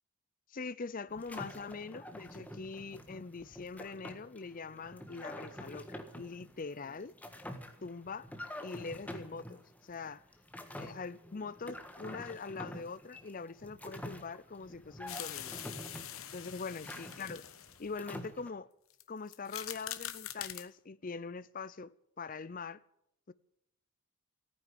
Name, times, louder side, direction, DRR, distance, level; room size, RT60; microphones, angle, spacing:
voice 1, 0.5-7.1 7.8-8.3 8.6-10.2 10.8-15.6 16.3-17.4 17.8-18.7 19.1-22.8 23.3-23.4, left 4 dB, 40° left, 0.5 m, -43 dB
sound 1, 1.1-18.5, left 1 dB, 5° left, 1.5 m, -47 dB
sound 2, 15.1-18.0 18.9-19.0 19.3-20.7, left 11 dB, 70° left, 1.1 m, -44 dB
15.0 x 9.7 x 9.9 m
head